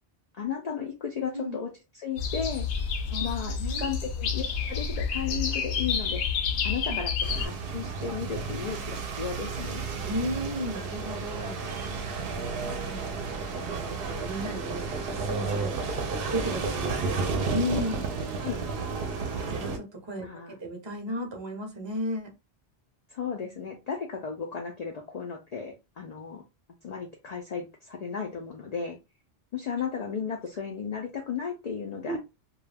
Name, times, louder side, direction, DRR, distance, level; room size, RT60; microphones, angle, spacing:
voice 1, 0.3-1.7 1.9-2.7 3.2-6.2 6.6-9.9 18.4-18.7 20.2-20.5 23.1-26.4 26.8-29.0 29.5-32.2, left 6 dB, 60° left, 0.4 m, -34 dB
sound 1, 2.2-7.5, left 6 dB, 75° left, 0.8 m, -29 dB
voice 2, 3.6-3.9 6.9-7.0 10.0-11.6 12.5-13.2 13.6-15.8 16.3-18.1 19.5-22.3 32.1-32.2, equal, 30° right, 0.6 m, -34 dB
sound 2, 7.2-19.8, right 4 dB, 65° right, 0.7 m, -32 dB
2.3 x 2.1 x 3.3 m
omnidirectional pair, 1.2 m